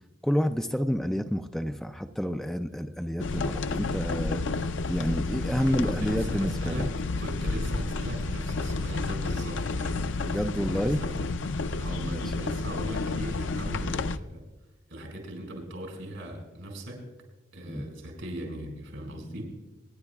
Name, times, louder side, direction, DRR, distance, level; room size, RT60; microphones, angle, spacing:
voice 1, 0.2-4.4 4.9-6.9 10.2-11.0 12.1-12.2 17.7-17.9, equal, ahead, 7 dB, 0.4 m, -29 dB
sound 1, 3.2-14.2, left 3 dB, 70° left, 0.5 m, -30 dB
voice 2, 5.6-10.1 10.6-11.3 11.8-14.4 14.9-17.1 17.5-19.6, right 1 dB, 80° right, 1 dB, 5.2 m, -39 dB
26.5 x 10.5 x 2.4 m, 1.2 s
head